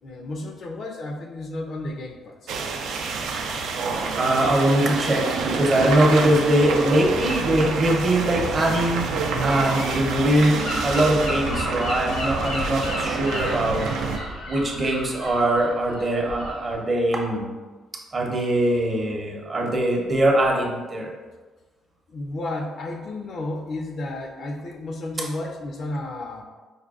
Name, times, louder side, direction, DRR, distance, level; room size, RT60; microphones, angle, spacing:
voice 1, 0.0-2.5 22.1-26.4, left 2 dB, 60° left, 3 dB, 0.5 m, -32 dB
sound 1, 2.5-14.2, right 4 dB, 85° right, 0.4 m, -28 dB
voice 2, 4.2-9.0 9.4-13.8 14.5-17.5 18.1-21.1, right 1 dB, 40° right, 0 dB, 0.7 m, -22 dB
Gull seagull / Wind, 9.5-16.7, left 1 dB, 80° left, 0.9 m, -32 dB
4.9 x 2.2 x 2.4 m, 1.3 s
cardioid pair, 90°, 0 cm